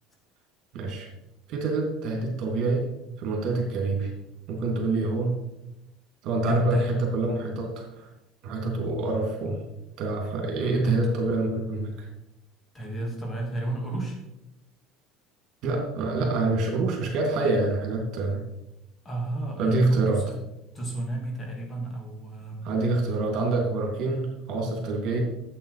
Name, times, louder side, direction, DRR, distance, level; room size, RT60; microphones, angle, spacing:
voice 1, 0.7-1.1 1.5-2.9 3.2-4.1 4.5-5.4 6.2-8.1 8.4-9.6 10.0-12.1 15.6-18.4 19.6-20.2 22.6-25.2, right 3 dB, 55° right, 1 dB, 3.2 m, -26 dB
voice 2, 6.4-6.9 10.7-11.0 12.7-14.2 19.0-20.2 20.7-22.7, right 2 dB, 20° left, 0 dB, 2.8 m, -31 dB
8.5 x 8.1 x 5.1 m, 0.89 s
supercardioid pair, 120°, 0 cm